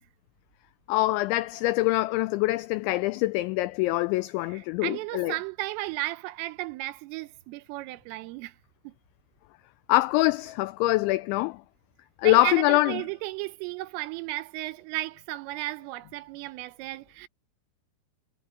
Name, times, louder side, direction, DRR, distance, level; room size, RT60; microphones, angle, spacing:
voice 1, 0.9-5.3 9.9-11.6 12.2-13.0, left 19 dB, 90° left, 2.6 m, -24 dB
voice 2, 4.5-8.6 8.8-8.9 12.2-17.3, right 17 dB, 85° right, 3.4 m, -34 dB
omnidirectional pair, 5.9 m